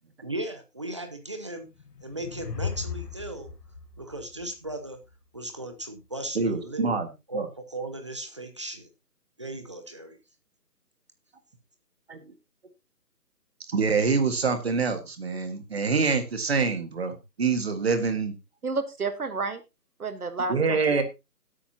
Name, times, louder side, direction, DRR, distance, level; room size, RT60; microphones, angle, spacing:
voice 1, 0.2-1.7 2.0-3.5 4.0-5.0 5.3-7.0 7.3-8.9 9.4-10.2, right 1 dB, 20° right, 6 dB, 0.9 m, -37 dB
sound 1, 1.7-5.1, left 6 dB, 80° left, 1.3 m, -37 dB
voice 2, 6.4-7.1 7.3-7.5 12.1-12.2 13.7-18.3 20.5-21.0, right 4 dB, 40° right, 8 dB, 1.8 m, -25 dB
voice 3, 18.6-19.6 20.0-21.0, right 3 dB, 65° right, 10 dB, 1.5 m, -31 dB
16.0 x 8.5 x 2.8 m, 0.25 s
figure-of-eight pair, 165°, 48 cm